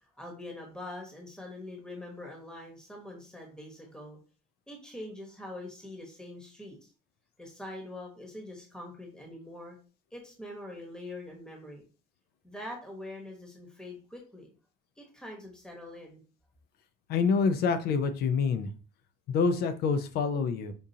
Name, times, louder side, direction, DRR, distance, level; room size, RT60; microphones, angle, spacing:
voice 1, 0.2-4.2 4.7-6.9 7.4-9.8 10.1-11.9 12.4-14.5 15.0-16.2, left 1 dB, 5° left, 0 dB, 1.1 m, -44 dB
voice 2, 17.1-18.7 19.3-20.7, left 5 dB, 70° left, 10 dB, 0.6 m, -26 dB
5.2 x 2.4 x 2.7 m, 0.37 s
cardioid pair, 110°, 17 cm